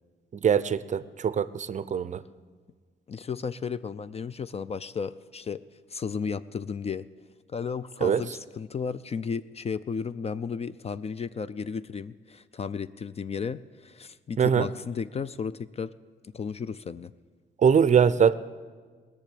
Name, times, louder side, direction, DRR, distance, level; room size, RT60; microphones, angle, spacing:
voice 1, 0.3-2.2 8.0-8.2 14.4-14.7 17.6-18.3, right 7 dB, 35° right, 15 dB, 0.5 m, -22 dB
voice 2, 3.1-5.6 5.9-7.1 7.5-15.9 16.3-17.1, left 6 dB, 30° left, 15 dB, 0.4 m, -34 dB
18.5 x 6.8 x 8.6 m, 1.5 s
cardioid pair, 90°, 20 cm